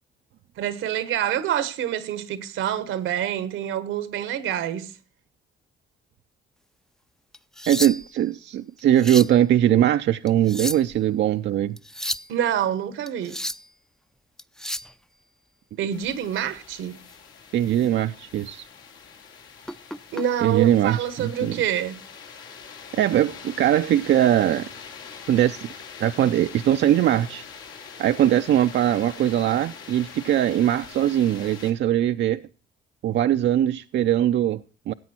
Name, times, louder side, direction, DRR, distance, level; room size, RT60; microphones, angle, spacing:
voice 1, 0.6-4.9 12.3-13.4 15.8-17.0 20.1-22.0, right 10 dB, 85° right, 1.2 m, -27 dB
sound 1, 7.3-8.2 8.8-9.4 10.3-11.0 11.8-12.3 13.1-13.7 14.4-14.9 17.0-17.1 17.7-17.9 18.3-18.5 19.7-20.2 21.3-21.5, equal, 5° left, 0.4 m, -32 dB
voice 2, 7.7-11.8 17.5-18.7 20.4-21.6 22.9-24.7 25.3-25.7 26.0-27.4 28.0-32.4 33.0-34.9, right 11 dB, 65° right, 0.5 m, -21 dB
sound 2, 15.9-31.7, left 6 dB, 85° left, 2.9 m, -43 dB
15.5 x 8.4 x 4.3 m
cardioid pair, 90°, 20 cm